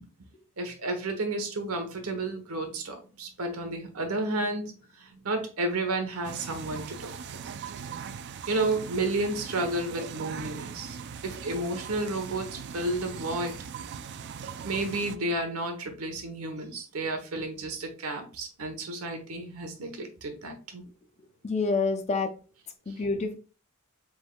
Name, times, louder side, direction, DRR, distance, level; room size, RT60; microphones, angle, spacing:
voice 1, 0.6-7.4 8.5-13.6 14.6-20.8, right 2 dB, 90° right, 5 dB, 1.0 m, -32 dB
sound 1, 6.2-15.2, right 7 dB, 55° right, 0.4 m, -40 dB
voice 2, 21.4-22.3 22.9-23.3, left 3 dB, 30° left, 8 dB, 0.5 m, -27 dB
5.3 x 3.5 x 2.3 m, 0.36 s
head